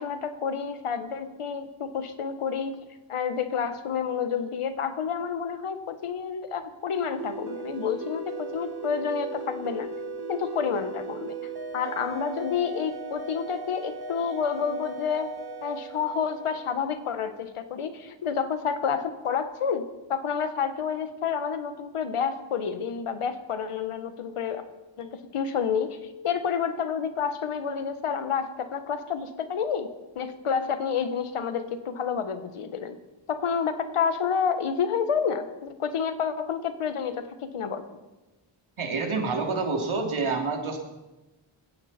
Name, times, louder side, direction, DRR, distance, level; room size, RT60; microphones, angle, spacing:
voice 1, 0.0-2.8 3.1-9.9 10.3-11.4 11.7-15.3 15.6-24.6 25.0-29.9 30.1-33.0 33.3-37.8, left 6 dB, 90° left, 9 dB, 1.4 m, -29 dB
sound 1, 6.9-17.3, right 3 dB, 50° right, 1.6 m, -37 dB
voice 2, 38.8-40.8, right 4 dB, 70° right, 2 dB, 3.2 m, -27 dB
20.0 x 16.0 x 4.4 m, 1.1 s
cardioid pair, 65°, 50 cm